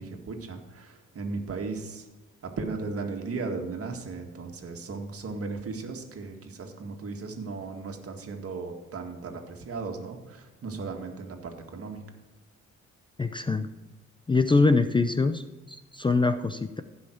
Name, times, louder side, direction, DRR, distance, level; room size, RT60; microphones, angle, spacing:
voice 1, 0.0-2.1 2.4-12.0, right 4 dB, 50° right, 4 dB, 1.9 m, -36 dB
voice 2, 13.2-13.7 14.3-16.8, left 3 dB, 15° left, 10 dB, 0.5 m, -24 dB
16.0 x 5.7 x 4.5 m, 1.2 s
cardioid pair, 90°, 30 cm